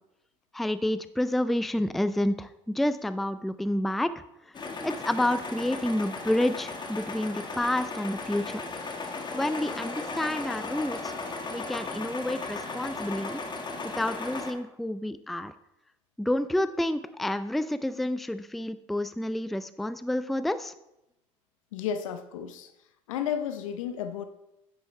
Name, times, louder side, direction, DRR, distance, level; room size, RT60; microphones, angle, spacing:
voice 1, 0.5-4.1 4.8-8.6 9.3-11.1 11.5-13.4 14.0-15.5 16.2-20.7, left 1 dB, ahead, 13 dB, 0.4 m, -29 dB
sound 1, 4.5-14.5, left 3 dB, 25° left, 1.6 m, -36 dB
voice 2, 21.7-22.7 23.1-24.3, left 8 dB, 80° left, 10 dB, 0.7 m, -32 dB
9.6 x 8.8 x 3.3 m, 0.88 s
hypercardioid pair, 75°, 17 cm